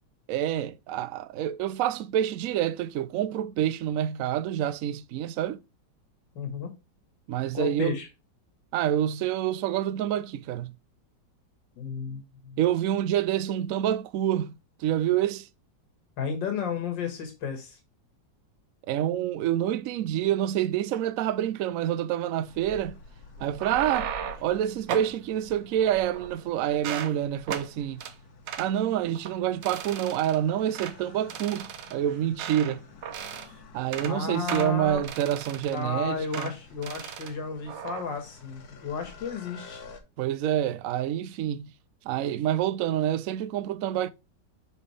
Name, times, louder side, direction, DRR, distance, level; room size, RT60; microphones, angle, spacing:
voice 1, 0.3-5.6 7.3-7.9 8.7-10.7 12.6-14.5 14.8-15.5 18.9-23.0 23.4-24.1 24.4-28.0 28.6-32.8 33.7-36.5 40.2-41.7 42.0-44.1, right 11 dB, 70° right, 0.8 m, -27 dB
voice 2, 6.4-6.7 7.5-8.1 11.8-12.6 16.2-17.8 34.0-35.0 35.7-39.8, left 5 dB, 85° left, 2.2 m, -33 dB
sound 1, 22.4-40.0, left 3 dB, 60° left, 1.5 m, -49 dB
sound 2, 23.4-24.5 24.9-25.2 25.8-26.4 26.7-27.1 27.5-27.7 28.0-28.1 28.5-28.7 29.1-29.3 29.6-30.4 30.7-31.0 31.3-32.8 33.0-33.5 33.8-34.1 34.5-35.9 36.3-36.5 36.8-37.3 37.7-38.0, right 9 dB, 90° right, 1.5 m, -36 dB
6.0 x 5.4 x 3.2 m
omnidirectional pair, 1.9 m